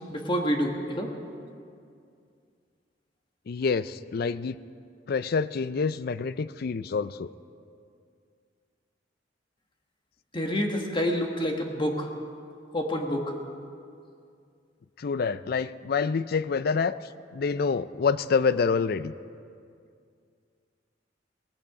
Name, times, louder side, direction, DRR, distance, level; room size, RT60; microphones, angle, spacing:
voice 1, 0.1-1.1 10.3-12.1 12.7-13.3, equal, 25° left, 2 dB, 1.5 m, -28 dB
voice 2, 3.5-4.6 5.1-7.3 15.0-17.0 17.3-19.1, left 5 dB, 55° left, 16 dB, 0.4 m, -27 dB
18.5 x 16.0 x 4.9 m, 2.3 s
head